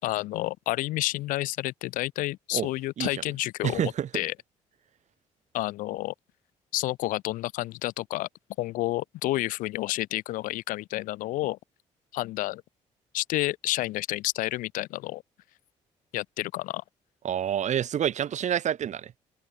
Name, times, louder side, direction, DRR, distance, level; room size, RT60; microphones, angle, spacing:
voice 1, 0.0-4.3 5.5-6.1 6.7-8.3 8.6-11.6 12.1-12.6 13.1-15.2 16.1-16.8, left 17 dB, 85° left, 5.2 m, -30 dB
voice 2, 3.6-4.1 17.2-19.2, right 9 dB, 60° right, 3.2 m, -28 dB
supercardioid pair, 65°, 13 cm